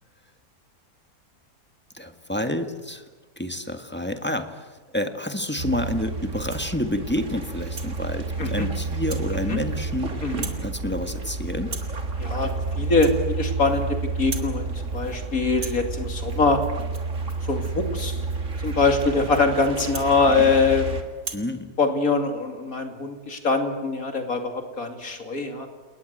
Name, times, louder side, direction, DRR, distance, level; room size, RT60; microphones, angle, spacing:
voice 1, 1.9-3.1 3.4-10.2 10.6-11.7 21.3-21.7, left 1 dB, 5° left, 7 dB, 1.6 m, -29 dB
sound 1, 5.6-21.0, right 4 dB, 50° right, 2.7 m, -30 dB
Rattle (instrument), 6.3-6.8 7.2-7.9 8.4-8.7 9.1-9.3 9.6-10.0 10.3-10.7 10.9-11.3 11.6-12.0 12.4-12.6 12.9-13.9 14.1-14.6 14.9-15.2 15.5-20.8 21.2-21.5, right 4 dB, 70° right, 2.9 m, -41 dB
voice 2, 12.2-16.6 17.5-18.2 18.6-20.9 21.8-25.7, left 3 dB, 60° left, 5 dB, 3.0 m, -23 dB
29.5 x 19.0 x 8.0 m, 1.4 s
omnidirectional pair, 1.7 m